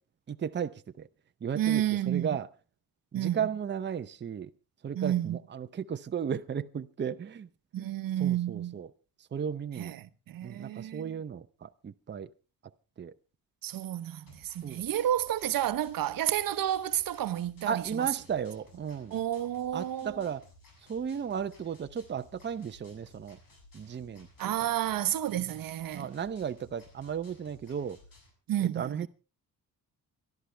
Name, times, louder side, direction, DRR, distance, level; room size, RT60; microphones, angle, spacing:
voice 1, 0.3-1.1 1.4-2.5 3.1-4.5 4.8-7.5 7.8-7.9 8.2-8.9 9.3-9.9 10.4-12.3 13.0-13.1 14.6-14.8 17.7-19.1 19.7-20.4 20.9-23.4 23.7-24.3 25.9-28.0 28.8-29.1, right 7 dB, 30° right, 0.7 m, -35 dB
voice 2, 1.5-2.4 3.1-3.5 4.9-5.4 7.7-8.8 9.7-11.2 13.6-18.2 19.1-20.3 24.4-26.1 28.5-29.1, right 12 dB, 75° right, 1.0 m, -31 dB
sound 1, 14.3-28.3, left 2 dB, 70° left, 7.2 m, -58 dB
25.5 x 12.0 x 3.4 m
cardioid pair, 105°, 34 cm